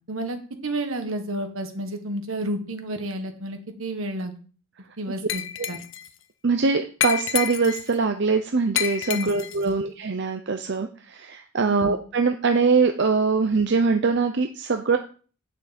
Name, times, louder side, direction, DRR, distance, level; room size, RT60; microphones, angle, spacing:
voice 1, 0.1-4.4 5.0-5.8 9.1-9.3 9.6-9.7 11.7-12.0, right 1 dB, 80° right, 6 dB, 1.6 m, -31 dB
Glass, 5.3-6.1 7.0-7.9 8.8-9.6, left 10 dB, 65° left, 0.6 m, -28 dB
voice 2, 6.4-15.0, right 4 dB, 55° right, 6 dB, 0.7 m, -23 dB
9.5 x 6.3 x 4.3 m, 0.39 s
head